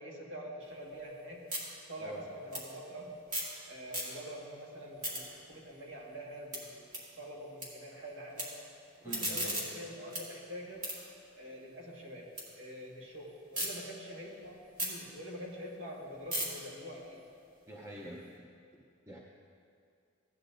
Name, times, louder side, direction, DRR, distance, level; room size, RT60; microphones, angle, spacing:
voice 1, 0.0-1.4 1.9-3.2 3.7-8.5 9.0-11.0 11.3-17.2, equal, 65° right, -3 dB, 1.8 m, -45 dB
sound 1, 0.6-3.6 3.8-4.5 4.8-7.7 8.0-8.4 8.9-12.5 12.8-13.7 14.1-18.3, right 1 dB, 40° right, 2.5 m, -40 dB
voice 2, 9.0-9.5 17.7-18.2 19.1-19.2, right 1 dB, 15° right, -3 dB, 0.7 m, -45 dB
16.0 x 10.0 x 2.6 m, 2.5 s
head